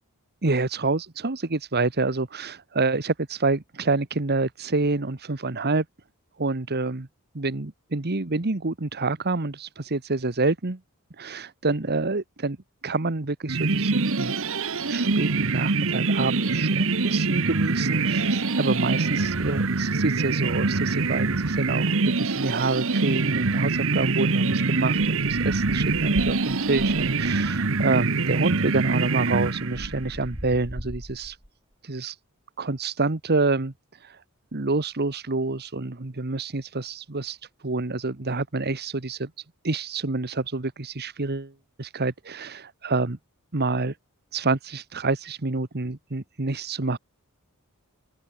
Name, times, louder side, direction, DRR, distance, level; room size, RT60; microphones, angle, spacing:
voice 1, 0.4-5.8 6.4-7.1 7.3-10.8 11.2-12.6 12.8-14.3 14.9-31.4 31.8-32.2 32.6-33.7 34.0-34.2 34.5-37.4 37.6-39.3 39.6-41.5 41.8-43.2 43.5-43.9 44.3-47.0, right 3 dB, 50° right, 1.4 m, -27 dB
sound 1, 13.5-30.1, right 3 dB, 65° right, 1.4 m, -24 dB
sound 2, 24.9-27.5 28.5-28.6 28.8-31.5, equal, 20° right, 7.2 m, -39 dB
open air
head